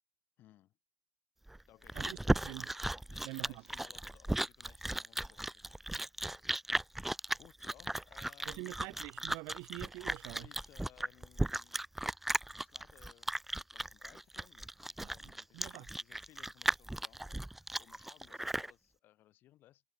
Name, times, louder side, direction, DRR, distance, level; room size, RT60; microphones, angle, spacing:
voice 1, 0.4-0.8 1.7-2.5 3.1-6.6 7.3-8.8 10.4-11.9 12.5-13.4 13.7-19.8, left 14 dB, 55° left, 4.7 m, -63 dB
Chewing mastication, 1.5-18.7, right 1 dB, 5° right, 0.7 m, -36 dB
voice 2, 1.9-2.7 3.2-3.6 8.5-10.5 15.0-15.9, right 28 dB, 80° right, 0.7 m, -46 dB
cardioid pair, 130°, 4 cm